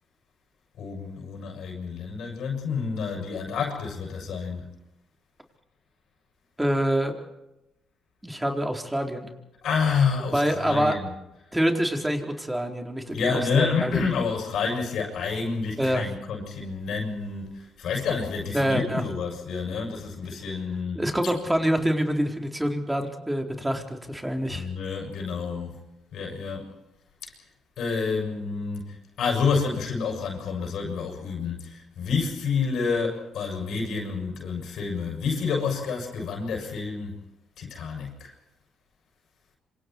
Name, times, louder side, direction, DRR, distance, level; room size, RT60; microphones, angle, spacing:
voice 1, 0.8-4.7 9.6-11.1 13.1-21.3 24.5-25.8 26.1-26.7 27.2-27.3 27.8-37.1 37.6-38.3, left 5 dB, 70° left, 7.3 m, -29 dB
voice 2, 6.6-7.1 8.2-9.3 10.3-10.9 11.5-14.1 15.8-16.1 18.5-19.0 21.0-24.7, equal, 10° right, 4.2 m, -26 dB
26.5 x 26.5 x 4.7 m
cardioid pair, 90°, 0 cm